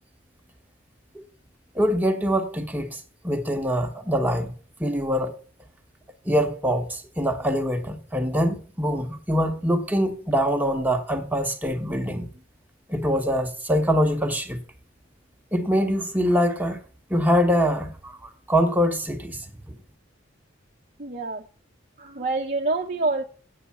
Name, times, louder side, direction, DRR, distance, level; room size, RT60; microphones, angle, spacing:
voice 1, 1.7-4.5 4.8-5.4 6.2-12.3 12.9-14.6 15.5-16.8 17.1-19.4, equal, 10° right, 1.1 m, -24 dB
voice 2, 21.0-21.5 22.0-23.2, right 3 dB, 40° right, 0.9 m, -26 dB
8.5 x 6.8 x 8.4 m
head